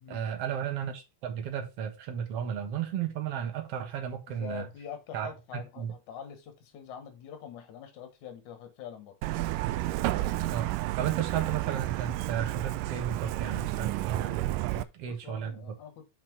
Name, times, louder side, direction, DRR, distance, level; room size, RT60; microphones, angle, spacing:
voice 1, 0.1-4.7 5.1-5.9 10.5-10.7 11.0-15.7, right 9 dB, 55° right, 2.1 m, -34 dB
voice 2, 4.3-9.2 14.8-16.1, left 8 dB, 65° left, 2.7 m, -45 dB
Truck, 9.2-14.8, right 17 dB, 85° right, 2.2 m, -31 dB
5.9 x 5.9 x 4.5 m
omnidirectional pair, 3.8 m